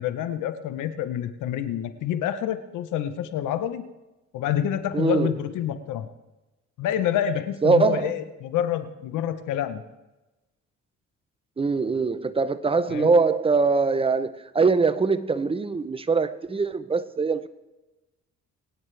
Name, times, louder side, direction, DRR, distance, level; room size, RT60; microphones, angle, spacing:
voice 1, 0.0-3.9 4.3-6.1 6.8-9.8 12.9-13.1, left 10 dB, 90° left, 10 dB, 1.0 m, -27 dB
voice 2, 4.9-5.4 7.6-8.1 11.6-17.5, right 4 dB, 20° right, 13 dB, 0.7 m, -22 dB
22.0 x 9.4 x 3.4 m, 1.1 s
cardioid pair, 90°, 30 cm